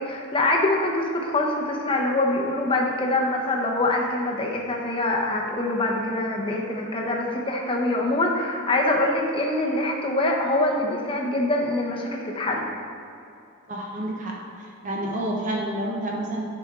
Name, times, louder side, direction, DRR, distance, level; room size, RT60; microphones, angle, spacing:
voice 1, 0.0-12.7, left 2 dB, 25° left, 0 dB, 0.8 m, -24 dB
voice 2, 13.7-16.5, right 1 dB, 35° right, -2 dB, 1.0 m, -29 dB
10.0 x 5.1 x 3.7 m, 2.7 s
head